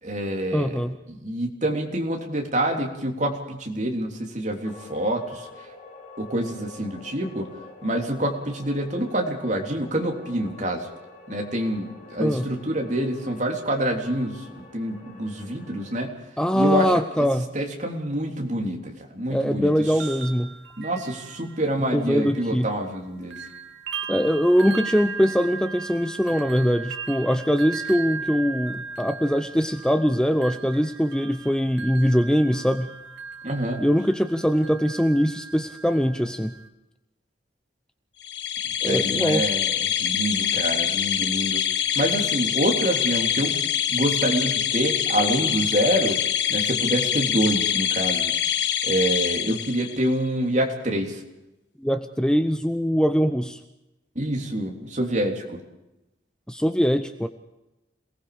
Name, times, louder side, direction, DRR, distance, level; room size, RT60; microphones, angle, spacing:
voice 1, 0.0-5.5 6.2-7.5 7.8-10.9 11.3-16.1 16.5-16.9 17.2-17.3 17.5-19.7 20.8-23.4 33.4-33.8 38.8-41.6 41.9-43.6 43.9-46.2 46.5-48.3 48.8-51.2 54.1-55.6, right 1 dB, 40° right, 1 dB, 3.4 m, -26 dB
voice 2, 0.5-1.0 12.2-12.5 16.4-17.5 19.3-20.5 21.9-22.7 24.1-32.9 33.8-36.5 38.8-39.4 51.8-53.6 56.5-57.3, equal, 5° left, 8 dB, 0.7 m, -22 dB
sound 1, 4.6-16.1, left 4 dB, 40° left, 4.4 m, -46 dB
sound 2, 19.7-23.0 23.3-36.7, right 5 dB, 70° right, 2.0 m, -37 dB
sound 3, 38.2-50.1, left 9 dB, 70° left, 1.2 m, -25 dB
27.0 x 19.0 x 5.1 m, 0.95 s
head